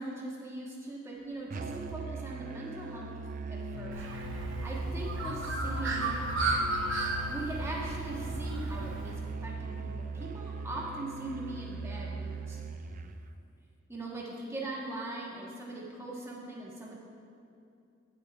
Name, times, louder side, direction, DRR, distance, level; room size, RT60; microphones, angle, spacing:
voice 1, 0.0-3.1 3.5-4.0 4.6-6.2 7.3-12.6 13.9-17.0, right 2 dB, 15° right, -4 dB, 1.3 m, -40 dB
Musical instrument, 1.5-13.2, right 4 dB, 40° right, 0.4 m, -39 dB
sound 1, 3.7-13.4, left 5 dB, 65° left, 0.4 m, -47 dB
Bird, 3.9-9.1, right 2 dB, 65° right, 0.9 m, -34 dB
16.5 x 6.8 x 2.5 m, 2.6 s
head